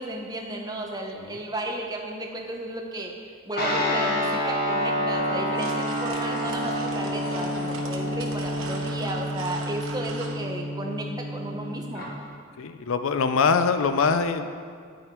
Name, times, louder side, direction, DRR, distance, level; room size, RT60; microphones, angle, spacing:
voice 1, 0.0-12.1, right 1 dB, 20° right, 1 dB, 0.7 m, -33 dB
Guitar, 3.5-12.1, equal, 50° left, 1.5 m, -28 dB
sound 1, 5.1-10.4, right 3 dB, 80° right, 1.1 m, -40 dB
voice 2, 12.6-14.5, left 5 dB, 85° left, 9 dB, 0.5 m, -23 dB
9.2 x 6.3 x 4.7 m, 2.1 s
head